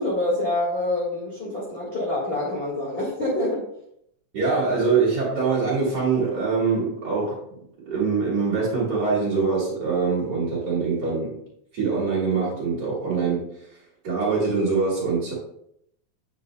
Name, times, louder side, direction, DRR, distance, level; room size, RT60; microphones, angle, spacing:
voice 1, 0.0-3.7, left 1 dB, 25° left, -6 dB, 1.4 m, -26 dB
voice 2, 4.3-7.4 7.9-11.4 11.7-13.5 14.0-15.3, right 4 dB, 35° right, -8 dB, 2.4 m, -23 dB
8.8 x 6.7 x 2.2 m, 0.73 s
omnidirectional pair, 3.3 m